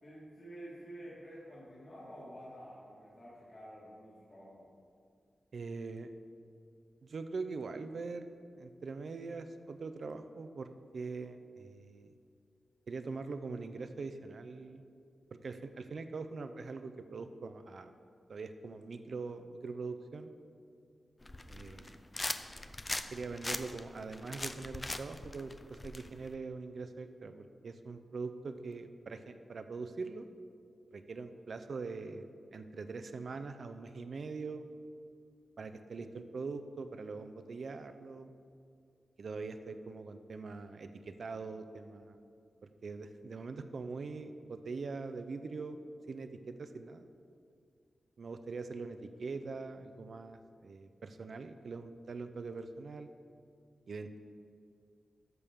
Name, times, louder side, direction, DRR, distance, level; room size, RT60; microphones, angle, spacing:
voice 1, 0.0-4.7, equal, 40° left, -8 dB, 1.9 m, -50 dB
voice 2, 5.5-6.1 7.0-8.2 8.6-10.7 10.9-12.1 12.9-14.8 15.3-17.9 18.3-20.3 21.5-22.0 23.1-30.3 30.9-34.6 35.6-38.3 39.2-42.2 42.8-45.8 46.1-47.0 48.2-53.1 53.9-54.2, right 4 dB, 60° right, 8 dB, 0.4 m, -42 dB
sound 1, 21.2-26.3, left 2 dB, 25° left, 0.4 m, -40 dB
12.5 x 6.7 x 3.5 m, 2.3 s
wide cardioid pair, 120°, 0 cm